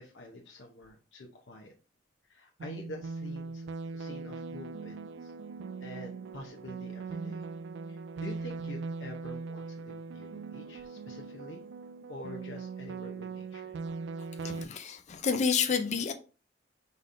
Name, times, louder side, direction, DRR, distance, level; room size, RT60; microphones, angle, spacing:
voice 1, 0.0-1.7 2.3-3.7 3.9-5.3 5.8-7.5 7.9-11.6 12.1-13.8, left 1 dB, 75° left, 0.8 m, -47 dB
sound 1, 2.6-14.6, right 4 dB, 65° right, 0.3 m, -40 dB
voice 2, 14.4-16.1, left 6 dB, 40° left, 0.5 m, -29 dB
5.1 x 4.1 x 2.5 m
head